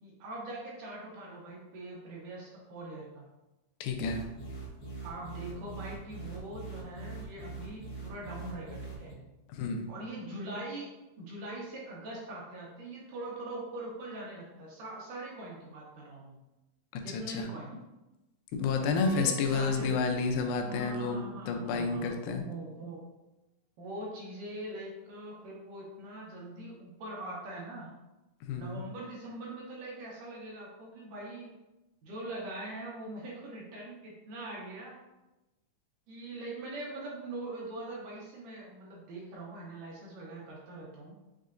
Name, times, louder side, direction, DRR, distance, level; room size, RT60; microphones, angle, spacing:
voice 1, 0.0-3.3 5.0-9.1 9.9-10.9 11.2-16.4 17.0-17.8 19.0-20.0 20.6-23.1 23.8-27.9 28.6-31.5 32.0-35.0 36.1-41.1, right 1 dB, 70° right, -4 dB, 2.2 m, -42 dB
voice 2, 3.8-4.2 9.5-9.9 16.9-17.5 18.5-22.4 28.4-28.8, left 4 dB, 85° left, 4 dB, 2.3 m, -30 dB
sound 1, 4.0-9.1, right 3 dB, 60° left, 1.3 m, -43 dB
Keyboard (musical), 18.9-21.6, left 1 dB, 85° right, 1.0 m, -49 dB
6.4 x 2.8 x 2.5 m, 1.0 s
omnidirectional pair, 4.2 m